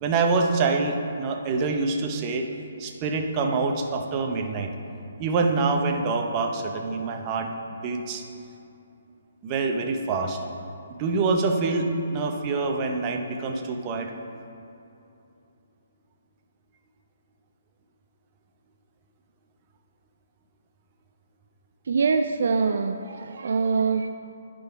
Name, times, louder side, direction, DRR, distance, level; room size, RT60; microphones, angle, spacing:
voice 1, 0.0-2.4 2.8-4.7 5.2-7.5 7.8-8.2 9.4-10.4 10.9-14.1, right 4 dB, 30° right, 3 dB, 0.7 m, -25 dB
voice 2, 21.9-24.1, right 5 dB, 65° right, 7 dB, 0.3 m, -24 dB
10.5 x 3.9 x 4.7 m, 2.8 s
hypercardioid pair, 150°, 0 cm